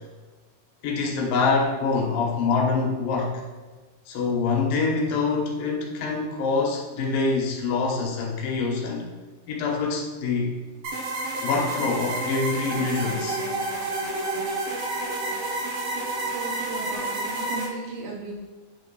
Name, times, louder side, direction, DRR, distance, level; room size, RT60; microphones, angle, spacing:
voice 1, 0.8-3.4 4.1-9.1 9.5-10.5 11.4-13.4, left 4 dB, 70° left, 0 dB, 2.8 m, -25 dB
sound 1, 10.8-17.7, right 2 dB, 80° right, 3.3 m, -29 dB
voice 2, 16.2-18.3, right 3 dB, 60° right, -3 dB, 2.3 m, -36 dB
8.3 x 3.7 x 5.3 m, 1.3 s
omnidirectional pair, 4.2 m